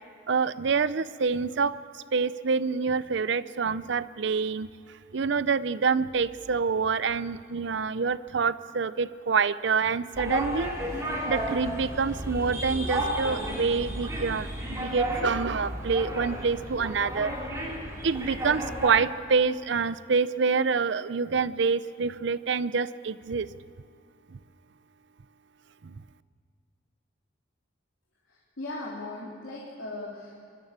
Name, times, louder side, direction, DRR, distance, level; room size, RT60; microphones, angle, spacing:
voice 1, 0.3-10.7 11.3-17.3 18.0-23.5 24.3-24.4 25.8-26.0, right 5 dB, 65° right, 16 dB, 0.5 m, -27 dB
sound 1, 10.1-18.9, right 1 dB, 15° right, 3.1 m, -32 dB
voice 2, 28.3-30.4, left 2 dB, 85° left, -5 dB, 3.3 m, -38 dB
24.0 x 13.0 x 8.7 m, 2.4 s
head